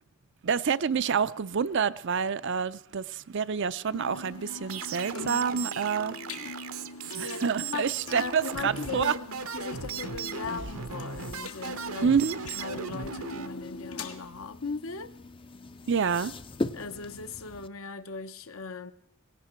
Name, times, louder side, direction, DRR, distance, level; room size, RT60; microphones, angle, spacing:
voice 1, 0.4-6.2 7.1-9.1 12.0-12.4 15.9-16.3, right 6 dB, 55° right, 0.5 m, -27 dB
sound 1, 3.9-14.2, left 3 dB, 85° left, 1.7 m, -42 dB
sound 2, 4.7-13.5, right 6 dB, 70° right, 0.9 m, -38 dB
voice 2, 7.2-12.1 12.5-15.1 16.7-18.9, left 4 dB, 70° left, 0.9 m, -38 dB
sound 3, 7.8-17.7, left 2 dB, 25° left, 0.5 m, -42 dB
18.5 x 17.0 x 4.4 m
head